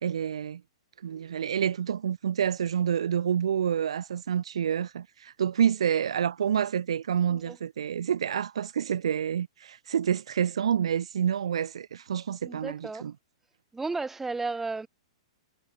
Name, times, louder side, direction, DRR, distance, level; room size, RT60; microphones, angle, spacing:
voice 1, 0.0-0.6 1.0-13.1, right 8 dB, 75° right, 1.6 m, -28 dB
voice 2, 12.4-13.1 13.7-14.9, right 3 dB, 10° right, 5.3 m, -33 dB
hypercardioid pair, 120°, 3 cm